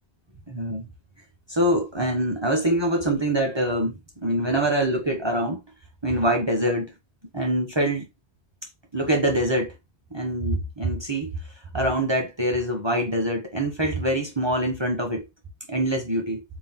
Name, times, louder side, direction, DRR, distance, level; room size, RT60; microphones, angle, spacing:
voice 1, 0.5-0.9 1.5-5.6 6.0-6.9 7.3-8.0 8.9-9.7 10.1-11.3 11.7-15.2 15.7-16.4, right 1 dB, 25° right, 0.8 m, -24 dB
3.8 x 2.7 x 3.6 m
omnidirectional pair, 1.1 m